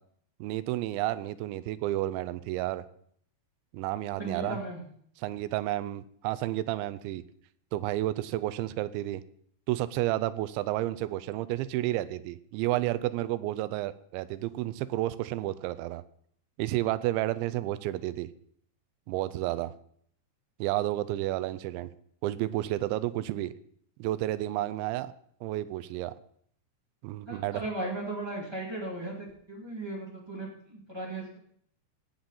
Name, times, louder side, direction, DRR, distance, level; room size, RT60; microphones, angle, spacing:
voice 1, 0.4-2.9 3.7-4.6 5.2-7.2 7.7-9.2 9.7-16.0 16.6-18.3 19.1-19.7 20.6-21.9 22.2-23.5 24.0-25.1 25.4-26.1 27.0-27.6, right 15 dB, 90° right, 14 dB, 2.9 m, -31 dB
voice 2, 4.2-4.8 27.3-31.4, right 2 dB, 30° right, -3 dB, 0.4 m, -36 dB
17.0 x 7.9 x 4.2 m, 0.64 s
omnidirectional pair, 5.2 m